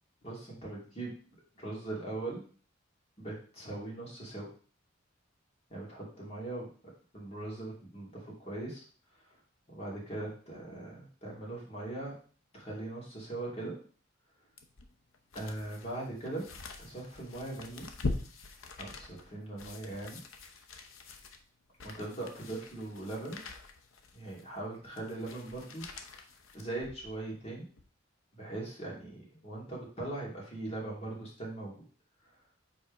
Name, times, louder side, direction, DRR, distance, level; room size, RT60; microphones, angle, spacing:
voice 1, 0.2-1.1 1.6-2.4 3.2-4.5 5.7-6.6 7.1-8.8 9.7-12.1 12.5-13.7 15.3-16.4 16.8-17.9 18.8-20.2 21.8-23.4 24.1-25.9 26.5-27.7 28.3-31.7, right 2 dB, 30° left, -3 dB, 2.6 m, -40 dB
sound 1, 14.6-27.2 27.7-27.8, left 3 dB, 85° left, 0.8 m, -43 dB
5.3 x 4.3 x 5.2 m, 0.41 s
head